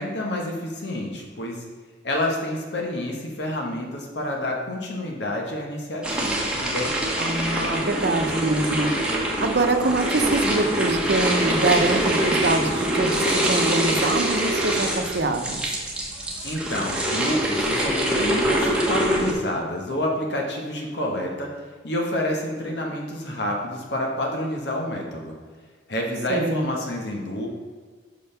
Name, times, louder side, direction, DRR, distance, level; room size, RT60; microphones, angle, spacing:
voice 1, 0.0-1.6 2.0-7.0 16.4-21.5 21.8-25.3 25.9-27.5, left 1 dB, 70° left, 0 dB, 1.3 m, -28 dB
sound 1, 6.0-19.3, right 1 dB, 5° right, 1.3 m, -24 dB
voice 2, 7.2-8.9 9.4-15.6 26.3-26.7, right 2 dB, 60° right, 5 dB, 0.8 m, -24 dB
6.4 x 5.6 x 5.7 m, 1.5 s
head